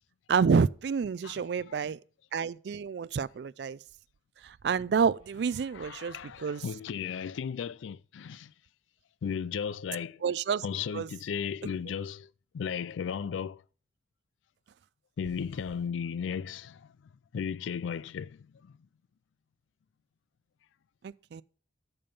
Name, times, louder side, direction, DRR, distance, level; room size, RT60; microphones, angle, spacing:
voice 1, 0.3-2.0 2.3-3.8 4.4-6.6 10.2-10.6 10.9-11.1 21.0-21.4, right 6 dB, 60° right, 0.3 m, -29 dB
voice 2, 1.3-1.8 5.5-8.5 9.2-10.3 10.6-13.6 15.2-16.9 17.3-18.8, left 7 dB, 90° left, 0.4 m, -36 dB
8.8 x 7.0 x 5.3 m
head